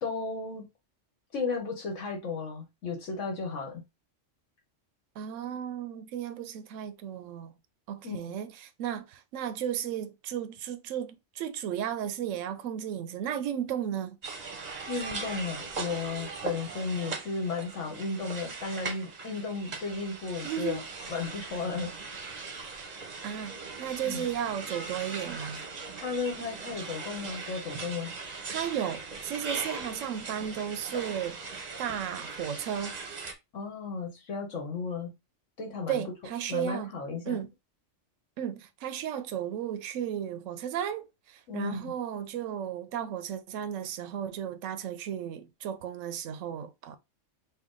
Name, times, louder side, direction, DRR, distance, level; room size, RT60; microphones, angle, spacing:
voice 1, 0.0-0.7 1.3-3.8 8.0-8.3 14.9-20.8 21.1-21.9 24.0-24.3 25.9-28.1 33.5-35.1 35.6-36.0 36.5-37.4 41.5-41.9, left 4 dB, 75° left, 1.4 m, -34 dB
voice 2, 5.2-7.5 7.9-14.2 20.4-20.8 23.2-25.6 28.5-31.4 31.8-33.0 35.9-36.9 37.3-37.5 38.4-47.0, right 9 dB, 85° right, 0.9 m, -34 dB
sound 1, 14.2-33.3, right 4 dB, 40° right, 0.7 m, -40 dB
4.6 x 2.2 x 3.7 m
omnidirectional pair, 1.3 m